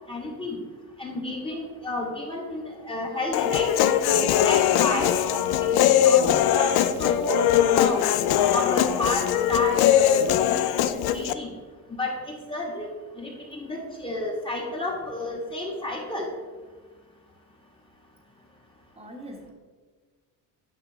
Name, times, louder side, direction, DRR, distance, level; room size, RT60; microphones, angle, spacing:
voice 1, 0.1-0.6 1.0-3.7 4.4-5.4 5.7-7.4 7.7-8.1 8.5-11.5 12.0-12.9 13.2-16.3, left 1 dB, 15° left, -1 dB, 2.0 m, -31 dB
Human voice, 3.3-11.3, left 10 dB, 70° left, 0.6 m, -21 dB
voice 2, 18.9-19.5, equal, 15° right, 0 dB, 1.6 m, -40 dB
10.5 x 6.0 x 3.5 m, 1.4 s
cardioid pair, 110°, 40 cm